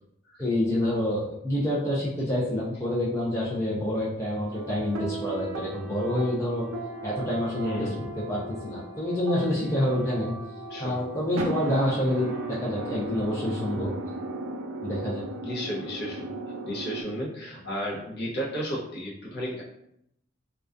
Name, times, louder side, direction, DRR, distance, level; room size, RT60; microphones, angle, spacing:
voice 1, 0.4-6.7 7.0-7.9 8.2-10.3 10.8-13.9 14.8-15.3, left 1 dB, 15° left, -7 dB, 0.4 m, -27 dB
sound 1, 4.5-17.0, right 2 dB, 70° right, 0.4 m, -37 dB
voice 2, 7.6-8.1 10.7-11.0 15.4-16.4 16.7-19.6, equal, 50° left, -5 dB, 0.7 m, -33 dB
2.3 x 2.1 x 2.4 m, 0.77 s
head